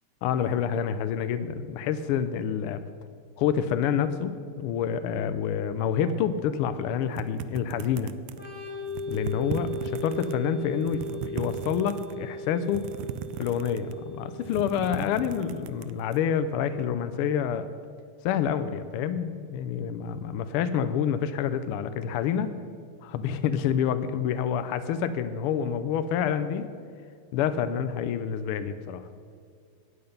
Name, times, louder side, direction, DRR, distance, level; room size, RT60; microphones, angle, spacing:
voice 1, 0.2-2.8 3.4-8.1 9.1-12.9 13.4-17.7 18.2-22.5 23.0-26.7 27.3-29.1, left 8 dB, 85° left, 11 dB, 1.5 m, -28 dB
sound 1, 7.2-8.5 8.9-10.3 10.7-12.2 12.7-14.0 14.4-16.2, right 9 dB, 85° right, 1.5 m, -37 dB
Organ, 8.3-15.8, equal, 20° right, 3.2 m, -38 dB
13.5 x 9.0 x 5.3 m, 2.3 s
omnidirectional pair, 2.4 m